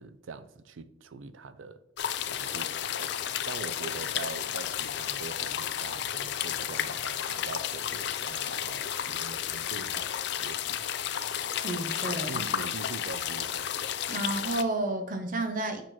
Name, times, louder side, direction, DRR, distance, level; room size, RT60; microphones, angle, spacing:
voice 1, 0.0-1.8 2.2-10.1 10.4-10.8 12.3-13.7, right 4 dB, 90° right, 0.5 m, -43 dB
sound 1, 2.0-14.6, left 10 dB, 60° left, 0.4 m, -32 dB
voice 2, 11.6-12.5 14.1-15.8, right 2 dB, 45° right, 0.6 m, -31 dB
6.7 x 5.8 x 3.1 m
head